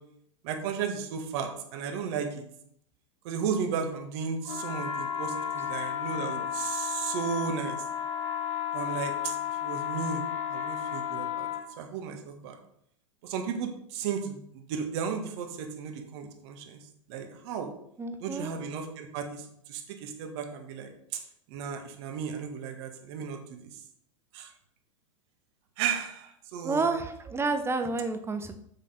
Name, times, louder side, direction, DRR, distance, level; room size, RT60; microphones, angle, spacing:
voice 1, 0.4-2.5 3.2-7.9 8.7-11.5 11.8-12.6 13.2-17.7 18.2-21.2 21.5-23.8 24.3-24.5 25.8-26.9, right 6 dB, 50° right, 5 dB, 1.8 m, -34 dB
sound 1, 4.4-11.7, left 10 dB, 65° left, 2.8 m, -33 dB
voice 2, 18.0-18.5 26.6-28.6, right 3 dB, 15° right, 8 dB, 1.0 m, -30 dB
7.4 x 6.6 x 5.1 m, 0.69 s
figure-of-eight pair, 95°, 17 cm